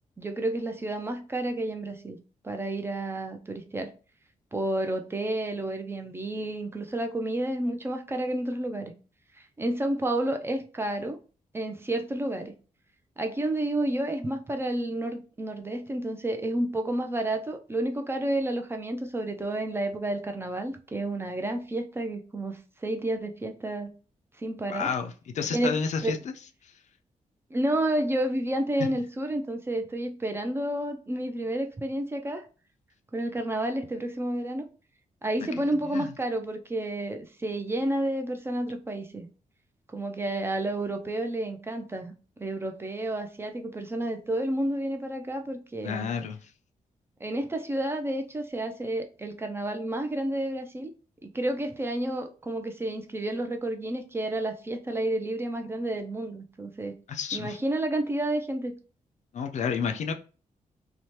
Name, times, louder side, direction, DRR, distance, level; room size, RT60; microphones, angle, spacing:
voice 1, 0.2-2.2 2.4-3.9 4.5-8.9 9.4-11.2 11.5-12.5 13.2-23.9 24.4-24.9 25.5-25.8 26.0-26.1 27.5-32.4 33.1-34.7 35.2-39.3 39.9-42.1 42.4-46.1 47.2-50.9 51.2-56.9 57.3-58.8, right 1 dB, 15° right, 0.3 m, -30 dB
voice 2, 24.7-26.2 26.6-26.7 35.9-36.1 45.8-46.5 57.1-57.6 59.3-60.1, left 6 dB, 60° left, 0.4 m, -30 dB
2.8 x 2.1 x 3.0 m
wide cardioid pair, 150°, 14 cm